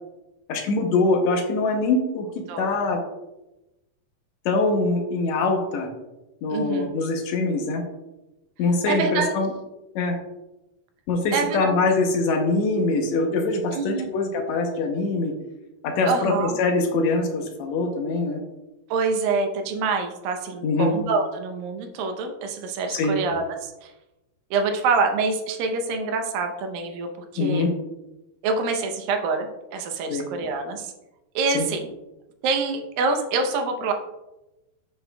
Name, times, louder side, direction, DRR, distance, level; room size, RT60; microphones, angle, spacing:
voice 1, 0.5-2.3 2.6-3.0 4.4-5.9 6.4-7.8 8.6-9.5 9.9-10.2 11.1-15.3 15.8-18.4 20.6-20.9 22.9-23.2 27.4-27.7 30.1-30.3 31.5-31.7, left 3 dB, 80° left, 3 dB, 1.7 m, -23 dB
voice 2, 6.5-6.9 8.9-9.3 11.3-11.8 13.7-14.1 16.1-16.6 18.9-23.9 24.5-27.7 28.4-30.9 31.4-31.9 32.4-33.9, right 4 dB, 80° right, 5 dB, 2.5 m, -26 dB
7.8 x 6.9 x 2.2 m, 0.99 s
omnidirectional pair, 4.1 m